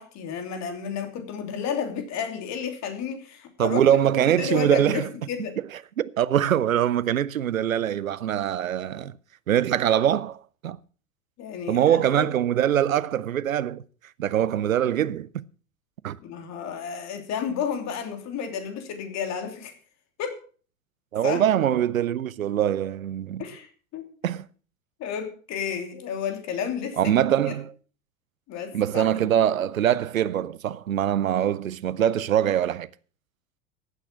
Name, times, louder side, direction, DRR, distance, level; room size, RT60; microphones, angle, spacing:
voice 1, 0.0-3.8 4.4-5.6 11.4-12.3 16.2-19.7 20.2-20.4 21.2-21.4 23.4-23.7 23.9-24.1 25.0-27.1 27.4-27.5 28.5-29.2, left 7 dB, 45° left, 3.1 m, -32 dB
voice 2, 3.6-5.1 5.6-9.1 9.5-10.8 11.7-13.8 14.2-15.4 16.0-16.2 21.1-23.5 24.2-24.5 27.0-27.7 28.7-32.9, right 10 dB, 85° right, 0.6 m, -23 dB
15.0 x 9.0 x 5.8 m
figure-of-eight pair, 80°, 39 cm